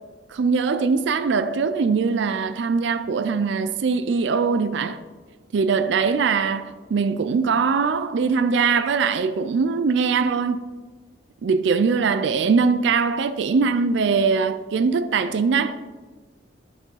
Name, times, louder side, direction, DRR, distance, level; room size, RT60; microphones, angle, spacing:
voice 1, 0.3-5.0 5.5-10.6 11.4-15.8, right 5 dB, 70° right, 0.4 m, -21 dB
10.5 x 4.7 x 5.6 m
head